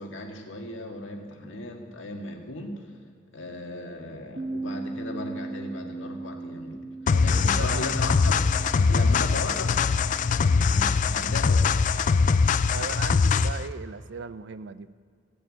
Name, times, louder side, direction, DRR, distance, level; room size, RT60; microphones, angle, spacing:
voice 1, 0.0-2.9 3.3-6.8 7.2-8.3 8.7-9.7 10.5-11.6, left 2 dB, 85° left, 2 dB, 1.8 m, -36 dB
Bass guitar, 4.4-10.6, right 2 dB, 40° right, 1.5 m, -39 dB
sound 1, 7.1-13.7, left 5 dB, 40° left, 0.3 m, -22 dB
voice 2, 7.1-8.0 8.9-9.1 12.7-14.9, right 5 dB, 65° right, 15 dB, 0.5 m, -38 dB
15.0 x 6.8 x 8.9 m, 2.1 s
head